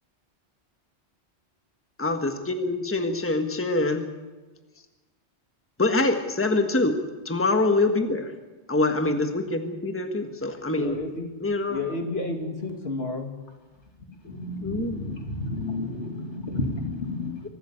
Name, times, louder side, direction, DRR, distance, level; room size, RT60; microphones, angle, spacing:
voice 1, 2.0-4.1 5.8-7.0 7.2-8.3 8.7-11.0 11.4-11.8 14.6-15.0, left 2 dB, 10° left, 6 dB, 1.4 m, -25 dB
voice 2, 10.7-11.4 11.7-13.3, left 2 dB, 60° left, 4 dB, 2.6 m, -31 dB
voice 3, 14.2-17.4, left 2 dB, 85° left, 3 dB, 2.9 m, -31 dB
24.0 x 12.5 x 8.7 m, 1.2 s
omnidirectional pair, 1.1 m